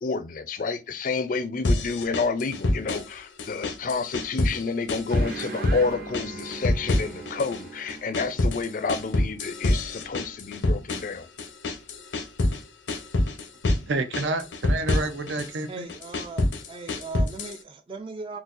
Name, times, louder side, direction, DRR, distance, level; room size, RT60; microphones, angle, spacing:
voice 1, 0.0-11.3, left 4 dB, 45° left, 0.4 m, -29 dB
sound 1, 1.6-3.1 3.4-4.6 4.9-5.8 6.1-7.6 7.9-12.6 12.9-13.8 14.1-15.5 15.9-17.6, left 1 dB, 85° left, 0.6 m, -26 dB
sound 2, 5.1-10.1, right 3 dB, 50° right, 0.7 m, -40 dB
voice 2, 13.9-15.9, right 2 dB, 85° right, 0.6 m, -29 dB
voice 3, 15.7-18.4, right 3 dB, 30° right, 0.3 m, -38 dB
3.8 x 2.4 x 2.4 m
head